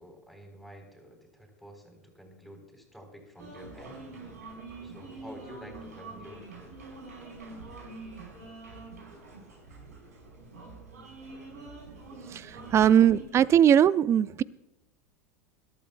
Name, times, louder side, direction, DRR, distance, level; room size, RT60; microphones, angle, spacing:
voice 1, 0.0-4.0 4.8-6.5, equal, ahead, 2 dB, 3.9 m, -49 dB
sound 1, 3.4-13.2, right 3 dB, 90° right, 4.4 m, -45 dB
voice 2, 12.3-14.4, right 9 dB, 30° right, 19 dB, 0.4 m, -21 dB
22.0 x 12.5 x 2.3 m, 0.93 s
hypercardioid pair, 95°, 9 cm